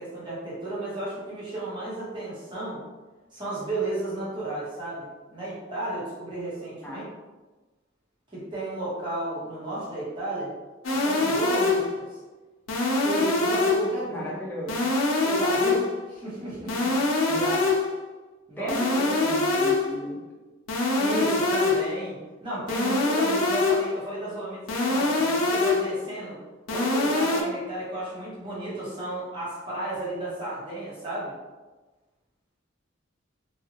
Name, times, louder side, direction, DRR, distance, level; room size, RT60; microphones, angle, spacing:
voice 1, 0.0-2.8 3.3-7.0 8.3-10.5 10.9-12.2 13.0-14.3 15.2-17.0 18.5-18.8 21.0-26.4 26.7-31.3, right 1 dB, 25° right, -8 dB, 1.0 m, -33 dB
sound 1, 10.8-12.0 12.7-14.0 14.7-16.0 16.7-18.0 18.7-20.0 20.7-22.0 22.7-24.0 24.7-26.0 26.7-27.4, left 3 dB, 85° left, 0.6 m, -24 dB
voice 2, 14.1-15.3 17.3-17.8 18.6-20.3, equal, 10° left, -5 dB, 0.6 m, -35 dB
2.8 x 2.4 x 2.8 m, 1.2 s
head